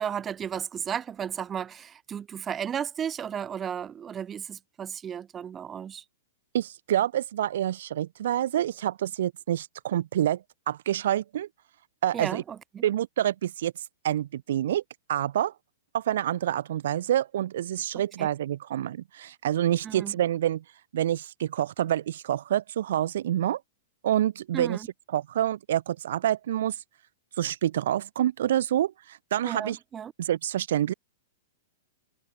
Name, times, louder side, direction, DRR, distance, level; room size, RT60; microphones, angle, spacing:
voice 1, 0.0-6.0 12.1-12.4 12.7-12.8 18.2-18.3 19.8-20.1 24.5-24.9 29.4-30.1, right 8 dB, 15° right, 0.8 m, -34 dB
voice 2, 6.5-11.5 12.0-12.4 12.8-13.7 14.0-14.8 15.1-15.5 15.9-20.6 20.9-23.6 24.0-24.8 25.1-26.8 27.4-29.8 30.2-30.9, right 11 dB, 60° right, 0.5 m, -27 dB
hypercardioid pair, 170°, 0 cm